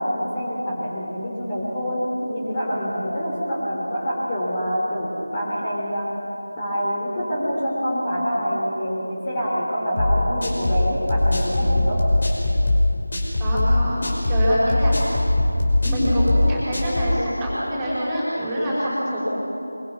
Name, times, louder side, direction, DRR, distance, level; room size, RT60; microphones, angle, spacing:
voice 1, 0.0-6.1 6.6-12.0, equal, 20° left, -6 dB, 3.9 m, -26 dB
sound 1, 10.0-17.2, left 1 dB, 50° left, 5.8 m, -21 dB
voice 2, 13.4-14.0 14.3-14.9 15.8-19.3, equal, 10° right, -9 dB, 5.4 m, -24 dB
25.0 x 24.5 x 5.7 m, 2.8 s
figure-of-eight pair, 170°, 0 cm